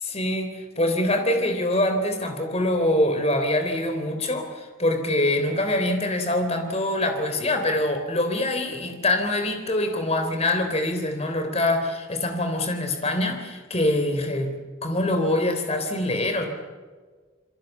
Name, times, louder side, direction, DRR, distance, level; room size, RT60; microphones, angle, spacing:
voice 1, 0.0-16.4, left 1 dB, 30° left, 6 dB, 3.5 m, -24 dB
28.0 x 22.0 x 7.2 m, 1.5 s
head